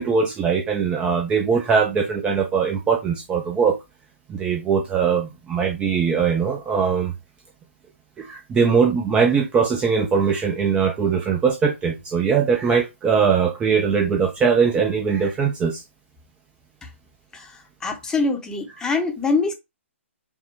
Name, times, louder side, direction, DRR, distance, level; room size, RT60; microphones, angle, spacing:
voice 1, 0.0-3.8 4.3-7.1 8.2-15.8 18.7-18.9, right 6 dB, 15° right, 0.5 m, -21 dB
voice 2, 17.8-19.5, left 3 dB, 10° left, 0.8 m, -23 dB
5.3 x 2.2 x 4.5 m
figure-of-eight pair, 130°, 7 cm